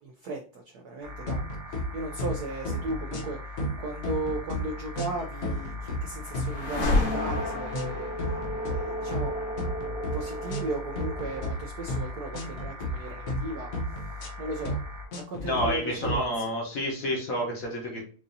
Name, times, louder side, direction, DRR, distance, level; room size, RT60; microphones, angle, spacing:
voice 1, 0.0-9.4 10.1-14.8 15.1-16.5, right 2 dB, 80° right, 2 dB, 0.8 m, -37 dB
sound 1, 1.0-15.1, left 2 dB, 50° right, 0.9 m, -41 dB
sound 2, 1.3-1.9 2.2-2.4 2.7-3.3 3.6-4.6 5.0-6.0 6.3-6.5 6.8-7.4 7.7-7.9 8.2-8.8 9.1-9.3 9.6-10.2 10.5-10.7 11.0-11.5 11.9-12.1 12.3-12.9 13.3-13.5 13.7-14.3 14.7-14.8 15.1-15.7 16.0-16.2, left 1 dB, 90° left, 0.6 m, -32 dB
sound 3, 5.6-15.3, left 1 dB, 65° left, 1.9 m, -33 dB
voice 2, 15.4-18.0, equal, 50° left, -1 dB, 1.2 m, -29 dB
4.8 x 2.6 x 2.6 m, 0.41 s
omnidirectional pair, 2.2 m